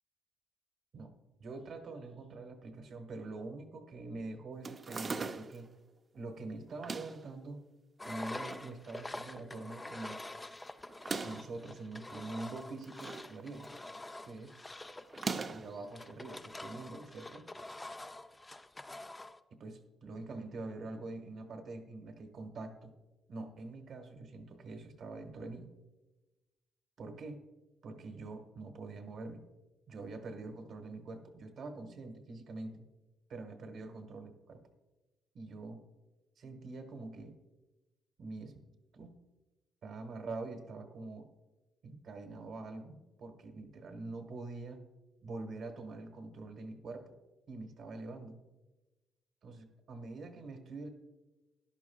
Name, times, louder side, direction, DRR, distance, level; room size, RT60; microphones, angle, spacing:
voice 1, 1.4-5.7 6.1-7.6 8.1-10.2 11.2-13.7 14.2-14.5 15.5-17.4 19.5-22.9 23.3-25.7 27.0-27.4 27.8-29.4 29.9-32.8 33.3-34.6 35.3-35.8 36.4-37.3 38.2-38.5 38.9-39.1 39.8-41.3 41.8-44.8 45.2-47.1 47.5-48.4 49.4-50.9, right 3 dB, 60° right, 6 dB, 1.3 m, -45 dB
sound 1, 4.6-5.7 6.7-7.3 8.0-8.7 9.1-9.2 9.3-9.4 10.9-11.5 12.6-13.3 13.6-14.0 15.1-15.8, right 4 dB, 40° right, 0.6 m, -40 dB
Engine, 8.0-19.4, left 2 dB, 15° left, 0.5 m, -46 dB
13.0 x 10.5 x 2.3 m, 1.1 s
cardioid pair, 90°, 0 cm